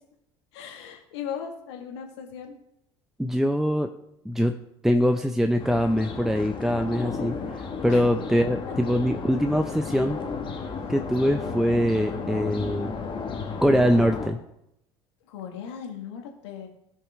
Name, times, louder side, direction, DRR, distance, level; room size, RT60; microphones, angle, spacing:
voice 1, 0.5-2.5 7.9-8.1 8.7-8.8 15.3-16.7, left 8 dB, 70° left, 3 dB, 1.9 m, -37 dB
voice 2, 3.2-3.9 4.2-4.5 4.8-10.2 10.9-12.9 13.6-14.4, equal, 5° right, 6 dB, 0.7 m, -23 dB
sound 1, 5.6-14.3, left 5 dB, 35° left, 1.8 m, -33 dB
16.0 x 5.5 x 3.7 m, 0.81 s
hypercardioid pair, 65°, 14 cm